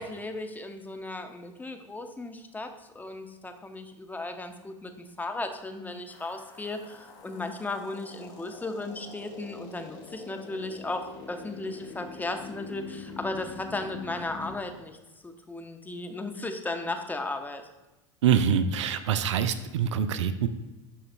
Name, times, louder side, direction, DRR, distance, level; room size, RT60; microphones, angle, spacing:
voice 1, 0.0-15.0 15.2-17.7, left 2 dB, 10° left, 6 dB, 0.8 m, -36 dB
sound 1, 6.1-14.6, left 4 dB, 50° left, 1.5 m, -45 dB
voice 2, 18.2-20.5, right 8 dB, 70° right, 11 dB, 0.4 m, -25 dB
11.5 x 3.9 x 2.3 m, 1.1 s
figure-of-eight pair, 80°, 16 cm